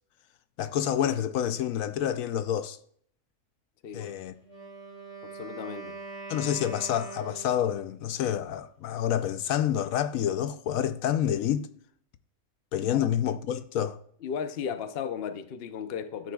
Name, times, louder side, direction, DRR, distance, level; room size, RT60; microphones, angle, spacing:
voice 1, 0.6-2.8 3.9-4.3 6.3-11.7 12.7-14.0, left 10 dB, 80° left, 1.0 m, -28 dB
voice 2, 3.8-4.1 5.2-6.0 12.9-13.1 14.2-16.3, left 7 dB, 55° left, 0.8 m, -35 dB
Wind instrument woodwind instrument, 4.4-7.9, right 4 dB, 5° left, 3.3 m, -42 dB
13.5 x 9.1 x 2.3 m
omnidirectional pair, 1.4 m